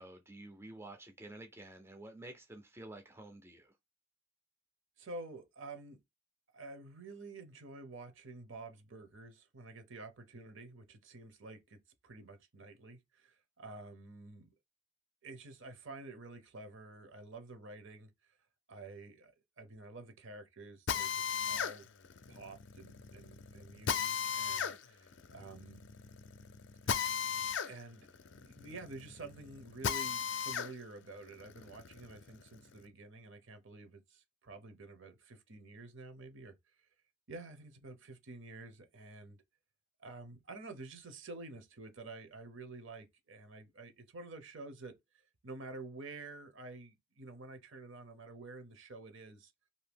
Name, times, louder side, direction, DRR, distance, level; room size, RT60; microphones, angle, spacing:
voice 1, 0.0-3.7, right 1 dB, 10° right, 0.4 m, -50 dB
voice 2, 5.0-6.0 6.5-11.8 12.0-14.5 15.2-18.1 18.7-21.9 22.3-25.9 26.8-26.9 27.5-28.1 28.5-36.6 37.3-39.4 40.0-45.0 45.4-49.5, right 3 dB, 60° right, 0.7 m, -49 dB
Drill, 20.9-30.7 31.2-32.8, left 7 dB, 55° left, 0.4 m, -37 dB
2.7 x 2.7 x 3.4 m
head